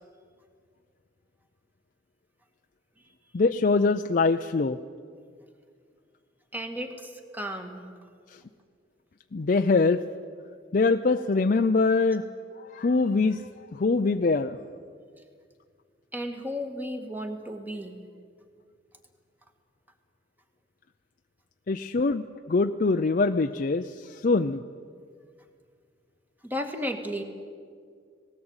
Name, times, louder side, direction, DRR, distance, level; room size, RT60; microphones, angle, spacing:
voice 1, 3.3-4.8 8.3-8.4 9.3-10.0 10.7-12.2 12.6-14.6 21.7-24.6, left 3 dB, 45° left, 6 dB, 0.5 m, -24 dB
voice 2, 6.5-7.8 16.1-18.0 26.4-27.2, equal, 10° right, 5 dB, 1.9 m, -34 dB
19.0 x 17.5 x 8.9 m, 2.1 s
head